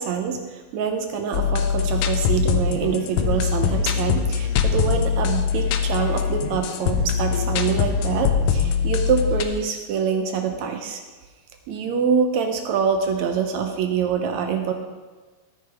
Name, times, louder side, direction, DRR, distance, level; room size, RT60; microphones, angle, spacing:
voice 1, 0.0-11.0 11.7-14.7, right 6 dB, 75° right, 5 dB, 1.8 m, -25 dB
sound 1, 1.3-9.4, left 7 dB, 80° left, 2.1 m, -22 dB
13.0 x 9.0 x 3.4 m, 1.3 s
omnidirectional pair, 3.7 m